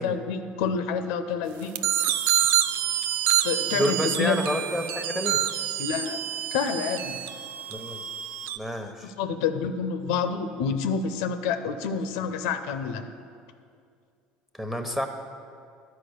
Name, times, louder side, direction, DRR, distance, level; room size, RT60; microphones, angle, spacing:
voice 1, 0.0-1.9 3.4-4.4 5.8-6.2 6.5-7.2 9.0-13.1, left 6 dB, 75° left, 9 dB, 0.6 m, -28 dB
sound 1, 1.7-8.6, right 11 dB, 65° right, 0.4 m, -27 dB
voice 2, 3.7-5.4 7.7-8.0 8.6-9.1 14.5-15.1, equal, 5° right, 5 dB, 1.0 m, -29 dB
11.5 x 4.9 x 6.5 m, 2.3 s
hypercardioid pair, 75°, 4 cm